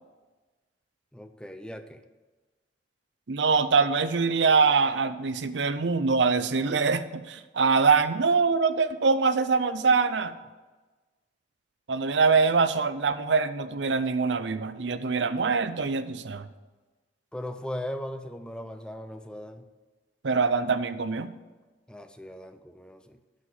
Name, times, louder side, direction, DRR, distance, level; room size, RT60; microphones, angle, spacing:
voice 1, 1.1-2.0 17.3-19.7 21.9-23.2, left 1 dB, 5° left, 8 dB, 0.6 m, -38 dB
voice 2, 3.3-10.3 11.9-16.5 20.2-21.3, right 4 dB, 85° right, 12 dB, 0.6 m, -24 dB
8.3 x 7.6 x 7.5 m, 1.3 s
head